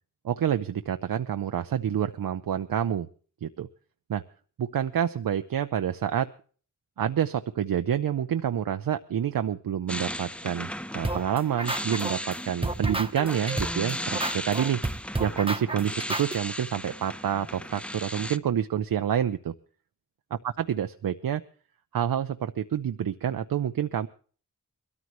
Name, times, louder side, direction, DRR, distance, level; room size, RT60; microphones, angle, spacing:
voice 1, 0.2-3.1 3.4-3.7 4.1-4.2 4.6-6.3 7.0-14.8 15.2-19.5 20.4-21.4 21.9-24.1, right 9 dB, 80° right, 9 dB, 0.6 m, -28 dB
sound 1, 9.9-18.4, equal, 5° left, 0.6 m, -36 dB
sound 2, 11.0-12.4 12.6-16.4, right 2 dB, 15° right, 0.9 m, -30 dB
22.0 x 13.5 x 3.1 m, 0.40 s
cardioid pair, 55°, 34 cm